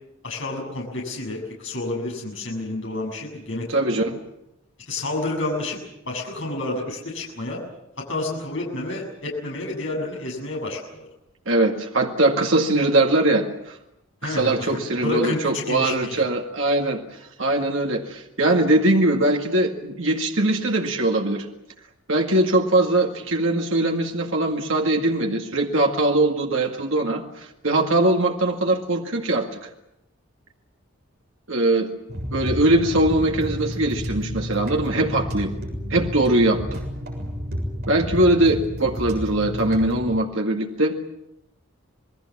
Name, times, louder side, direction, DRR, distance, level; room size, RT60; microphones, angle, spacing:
voice 1, 0.2-3.7 3.9-4.0 4.9-5.8 6.1-7.6 8.1-11.1 14.2-16.2, left 2 dB, 60° left, -1 dB, 7.2 m, -29 dB
voice 2, 3.7-4.2 11.5-13.8 14.2-17.0 17.4-21.5 22.1-29.7 31.5-31.9 32.3-35.5 35.9-36.8 37.9-41.0, right 2 dB, 65° right, 2 dB, 2.1 m, -21 dB
sound 1, 32.1-40.2, equal, 50° right, 7.0 m, -31 dB
27.5 x 20.5 x 7.5 m, 0.84 s
head